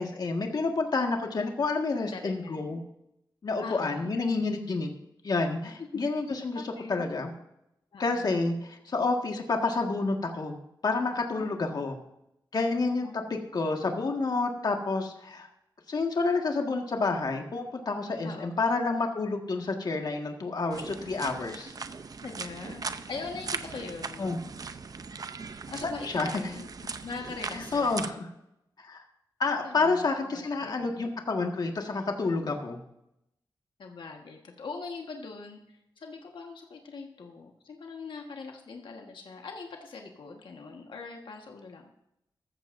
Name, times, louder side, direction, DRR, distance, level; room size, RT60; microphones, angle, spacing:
voice 1, 0.0-2.8 3.4-4.9 5.2-6.6 6.9-7.3 8.0-10.6 10.8-12.0 12.5-15.5 15.9-21.7 24.2-24.4 26.0-26.3 27.5-28.2 28.8-29.0 29.4-32.8, left 3 dB, 55° left, 2 dB, 1.7 m, -29 dB
voice 2, 2.1-2.8 3.6-4.1 5.8-6.0 6.5-7.0 7.9-8.3 11.3-11.5 13.0-13.2 18.2-18.5 22.2-24.4 25.7-26.7 27.0-28.2 29.6-31.0 33.8-35.6 36.0-41.9, left 4 dB, 80° left, 2 dB, 1.5 m, -42 dB
sound 1, 20.7-28.1, right 5 dB, 50° right, 0.6 m, -39 dB
14.5 x 14.0 x 2.6 m, 0.81 s
wide cardioid pair, 140°, 8 cm